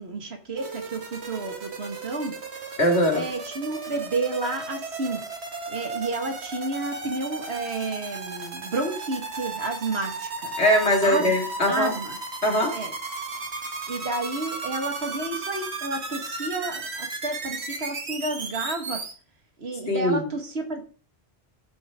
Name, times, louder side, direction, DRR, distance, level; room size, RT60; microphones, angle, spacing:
voice 1, 0.0-2.3 3.1-5.2 5.7-10.5 11.0-11.3 11.7-12.2 12.7-12.9 13.9-19.0 19.6-20.8, right 2 dB, 75° right, 5 dB, 2.0 m, -31 dB
sound 1, 0.6-19.1, right 3 dB, 90° right, 1.8 m, -35 dB
voice 2, 2.8-3.2 10.6-11.9 12.4-12.7 19.9-20.3, left 1 dB, 85° left, 2 dB, 2.8 m, -21 dB
14.0 x 7.8 x 3.7 m, 0.39 s
omnidirectional pair, 1.1 m